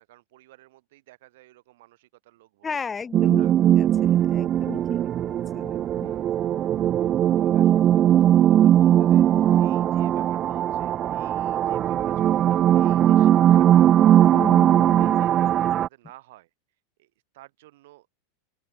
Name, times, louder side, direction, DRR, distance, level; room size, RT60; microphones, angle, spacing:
voice 1, 0.0-3.0 3.3-3.5 6.0-6.3 7.0-7.8 8.1-13.9 15.0-18.1, right 17 dB, 65° right, 6.3 m, -54 dB
voice 2, 2.6-6.1 14.3-15.1, left 5 dB, 20° left, 3.9 m, -35 dB
sound 1, 3.1-15.9, right 11 dB, 35° right, 0.9 m, -19 dB
open air
hypercardioid pair, 95°, 0 cm